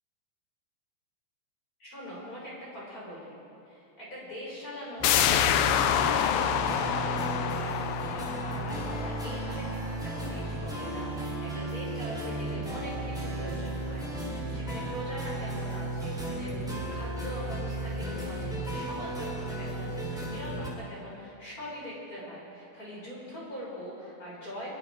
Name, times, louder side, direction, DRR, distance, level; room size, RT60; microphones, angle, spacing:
voice 1, 1.8-3.4 3.6-24.8, equal, 25° left, -6 dB, 6.8 m, -42 dB
sound 1, 5.0-10.5 10.9-11.0, left 10 dB, 80° left, 2.4 m, -28 dB
sound 2, 5.0-20.7, right 2 dB, ahead, 3.3 m, -34 dB
26.0 x 21.5 x 5.0 m, 2.8 s
omnidirectional pair, 4.1 m